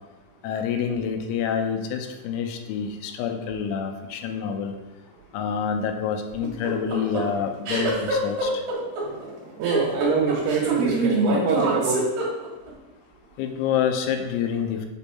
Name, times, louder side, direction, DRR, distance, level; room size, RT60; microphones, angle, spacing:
voice 1, 0.4-4.7 5.3-8.6 13.4-14.9, left 7 dB, 85° left, 5 dB, 3.1 m, -27 dB
sound 1, 6.4-12.7, right 2 dB, 55° right, 2.3 m, -25 dB
voice 2, 9.6-12.1, right 5 dB, 80° right, 0 dB, 2.5 m, -24 dB
7.2 x 4.4 x 4.2 m, 1.1 s
omnidirectional pair, 5.3 m